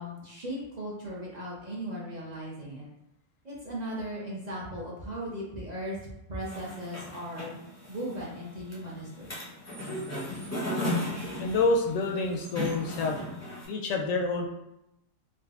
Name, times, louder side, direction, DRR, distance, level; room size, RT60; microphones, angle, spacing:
voice 1, 0.0-2.9 3.4-6.0 6.3-7.6 7.9-9.3, equal, 45° right, -6 dB, 0.6 m, -37 dB
sound 1, 6.4-13.7, left 1 dB, 20° left, 0.5 m, -36 dB
voice 2, 11.4-13.2 13.7-14.5, left 3 dB, 85° left, 2 dB, 1.0 m, -27 dB
3.8 x 2.1 x 2.3 m, 0.85 s
omnidirectional pair, 1.3 m